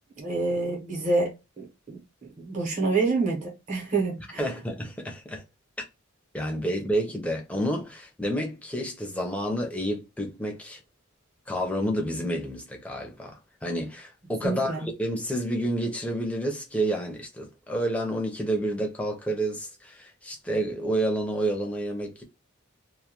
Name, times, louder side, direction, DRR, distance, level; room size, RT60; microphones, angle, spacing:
voice 1, 0.2-4.5 14.4-14.9, right 3 dB, 35° right, 0.8 m, -28 dB
voice 2, 4.4-5.4 6.3-10.8 11.5-22.2, right 1 dB, 5° left, 0.5 m, -29 dB
2.2 x 2.2 x 2.8 m
head